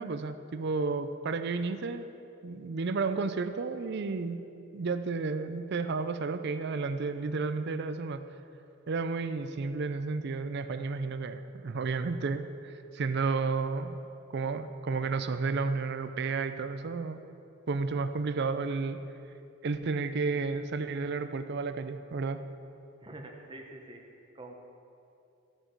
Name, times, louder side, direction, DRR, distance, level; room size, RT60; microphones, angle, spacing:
voice 1, 0.0-2.1 2.4-4.4 4.7-8.2 8.9-14.0 14.3-17.2 17.7-19.0 19.6-22.4, right 4 dB, 55° right, 10 dB, 0.5 m, -32 dB
voice 2, 23.0-24.5, right 2 dB, 25° right, 2 dB, 1.0 m, -46 dB
14.0 x 6.6 x 4.6 m, 2.7 s
head